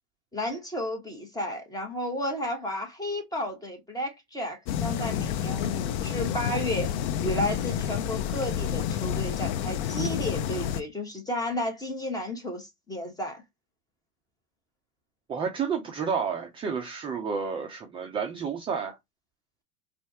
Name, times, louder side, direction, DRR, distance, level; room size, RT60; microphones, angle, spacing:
voice 1, 0.3-6.9 7.2-13.4, left 1 dB, 10° left, 1.2 m, -32 dB
sound 1, 4.7-10.8, left 9 dB, 50° left, 0.6 m, -29 dB
voice 2, 15.3-19.0, right 6 dB, 15° right, 0.4 m, -30 dB
4.2 x 2.4 x 2.7 m
hypercardioid pair, 110°, 45 cm